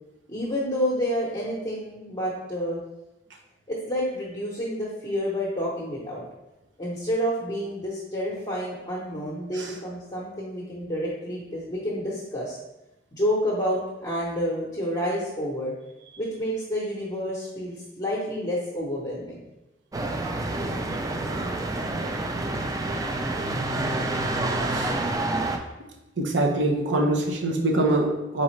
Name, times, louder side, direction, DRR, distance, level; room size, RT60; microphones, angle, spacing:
voice 1, 0.3-2.8 3.7-6.2 6.8-12.6 13.1-15.7 16.2-19.4, equal, 25° left, -7 dB, 0.8 m, -29 dB
sound 1, 19.9-25.6, right 2 dB, 20° right, 0.3 m, -28 dB
voice 2, 26.2-28.4, right 1 dB, 85° right, 0 dB, 0.8 m, -24 dB
4.0 x 3.8 x 3.1 m, 0.98 s
head